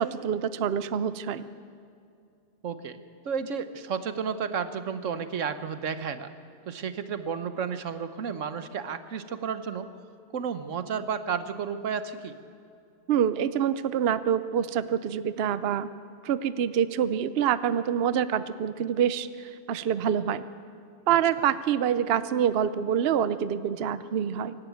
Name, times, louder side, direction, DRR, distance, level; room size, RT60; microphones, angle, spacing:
voice 1, 0.0-1.4 13.1-15.9 16.2-20.4 21.1-24.6, right 9 dB, 60° right, 13 dB, 0.8 m, -26 dB
voice 2, 2.6-3.0 3.2-6.3 6.7-9.9 10.3-12.3 21.1-21.2, right 6 dB, 85° right, 10 dB, 1.3 m, -32 dB
24.0 x 12.0 x 9.2 m, 2.5 s
omnidirectional pair, 1.3 m